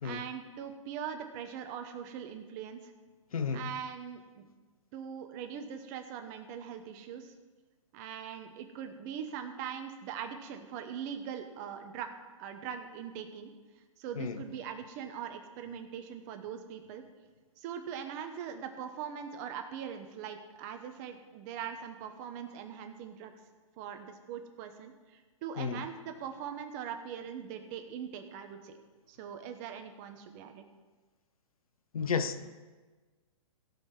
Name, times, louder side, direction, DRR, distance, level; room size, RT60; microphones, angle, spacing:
voice 1, 0.0-2.9 3.5-4.5 4.9-7.3 7.9-12.1 12.4-13.5 14.0-17.0 17.6-23.3 23.8-28.8 29.1-30.6, right 8 dB, 30° right, 6 dB, 1.1 m, -41 dB
voice 2, 3.3-3.7 14.2-14.4 25.6-25.9 31.9-32.5, left 6 dB, 90° left, 11 dB, 0.9 m, -33 dB
16.5 x 5.7 x 6.0 m, 1.3 s
hypercardioid pair, 150°, 18 cm